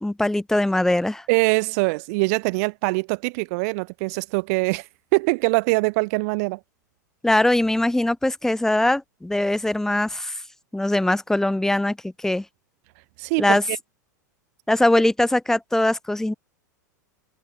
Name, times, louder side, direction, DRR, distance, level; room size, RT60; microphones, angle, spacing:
voice 1, 0.0-1.2 7.2-10.3 10.7-12.0 12.2-12.4 13.4-13.6 14.7-16.3, left 1 dB, 5° left, 2.4 m, -21 dB
voice 2, 1.3-6.6 13.2-13.8, right 28 dB, 55° right, 1.2 m, -23 dB
hypercardioid pair, 100°, 10 cm